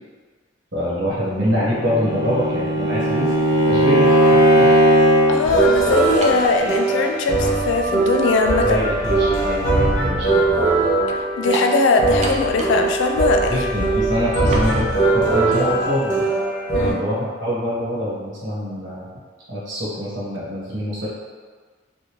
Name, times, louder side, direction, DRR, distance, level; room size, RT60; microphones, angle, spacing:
voice 1, 0.7-3.3 3.6-4.2 4.6-4.7 8.6-10.6 13.5-16.3 16.9-19.1 19.5-21.1, equal, 70° right, -9 dB, 1.2 m, -25 dB
Bowed string instrument, 1.5-5.4, right 1 dB, ahead, 1.4 m, -16 dB
voice 2, 5.3-8.8 11.1-13.5 16.7-17.0, left 3 dB, 75° left, 4 dB, 0.3 m, -20 dB
sound 1, 5.4-16.9, right 2 dB, 40° left, 1.0 m, -20 dB
sound 2, 6.2-6.5 7.4-7.5 11.5-11.8 12.2-12.9 13.1-13.2 14.5-14.7, right 1 dB, 35° right, 0.4 m, -28 dB
3.4 x 2.5 x 3.0 m, 1.5 s
head